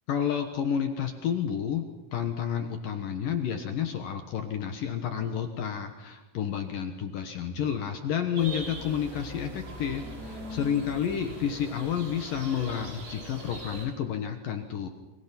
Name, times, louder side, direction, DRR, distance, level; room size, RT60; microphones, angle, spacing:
voice 1, 0.1-14.9, left 8 dB, 60° left, 6 dB, 2.5 m, -30 dB
sound 1, 8.3-13.9, equal, 55° right, 7.9 m, -41 dB
29.5 x 25.5 x 6.0 m, 1.1 s
omnidirectional pair, 5.3 m